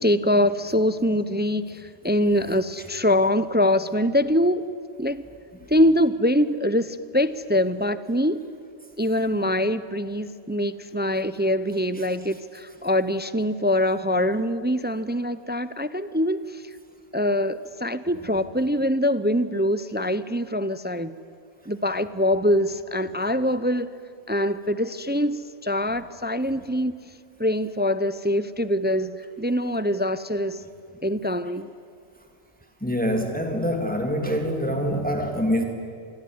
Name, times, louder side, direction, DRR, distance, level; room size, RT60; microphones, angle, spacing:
voice 1, 0.0-4.7 5.0-5.3 5.7-8.4 9.0-16.7 17.1-21.2 21.7-23.9 24.3-27.0 27.4-30.6 31.0-31.7, left 1 dB, 10° right, 14 dB, 0.5 m, -24 dB
voice 2, 32.8-35.6, equal, 5° left, 3 dB, 2.3 m, -25 dB
27.0 x 21.0 x 9.5 m, 2.2 s
omnidirectional pair, 1.2 m